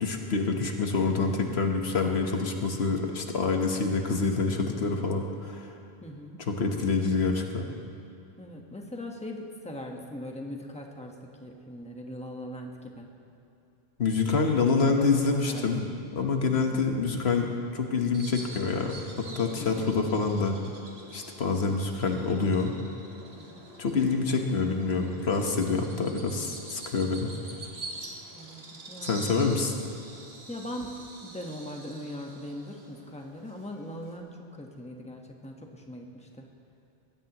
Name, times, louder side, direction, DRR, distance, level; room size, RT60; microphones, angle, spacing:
voice 1, 0.0-5.7 6.5-7.7 14.0-19.0 19.3-20.6 21.1-22.7 23.8-27.3 29.0-29.7, left 4 dB, 90° left, 3 dB, 1.5 m, -26 dB
voice 2, 6.0-6.4 8.4-11.1 11.4-13.1 14.3-15.8 16.5-16.8 19.6-19.9 23.4-23.6 27.2-27.8 28.3-29.4 30.5-30.9 31.2-36.5, left 1 dB, 5° left, 1 dB, 1.3 m, -41 dB
Bird vocalization bird call bird song, 18.1-34.2, right 2 dB, 85° right, 1.9 m, -46 dB
21.0 x 16.0 x 3.0 m, 2.7 s
omnidirectional pair, 1.0 m